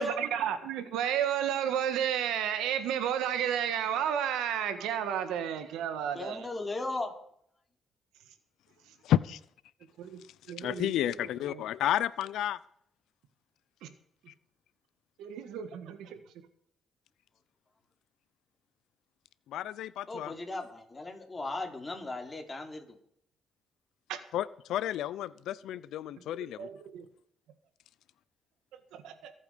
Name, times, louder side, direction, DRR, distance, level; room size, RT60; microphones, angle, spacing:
voice 1, 0.0-6.5 10.0-10.2 10.5-11.2 11.4-11.6 13.8-13.9 15.2-16.2 24.1-24.2 26.6-27.1 28.9-29.3, right 9 dB, 90° right, 10 dB, 1.7 m, -32 dB
voice 2, 6.1-7.1 20.1-23.0, left 2 dB, 20° left, 3 dB, 3.5 m, -36 dB
voice 3, 9.0-9.4 10.6-12.6 19.5-20.3 24.3-26.7, left 12 dB, 80° left, 18 dB, 0.5 m, -31 dB
23.0 x 8.6 x 5.1 m, 0.67 s
cardioid pair, 90°, 0 cm